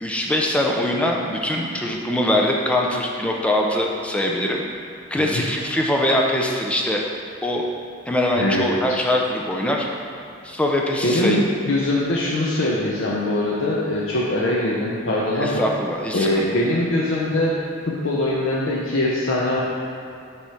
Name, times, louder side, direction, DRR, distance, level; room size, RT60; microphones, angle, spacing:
voice 1, 0.0-4.6 5.1-7.0 7.4-7.7 8.1-9.9 10.4-11.4 15.4-16.5, left 1 dB, 5° left, -1 dB, 0.5 m, -22 dB
voice 2, 11.0-15.6 16.1-17.5 17.9-19.6, left 1 dB, 75° left, -5 dB, 0.7 m, -22 dB
6.0 x 3.1 x 5.6 m, 2.6 s
head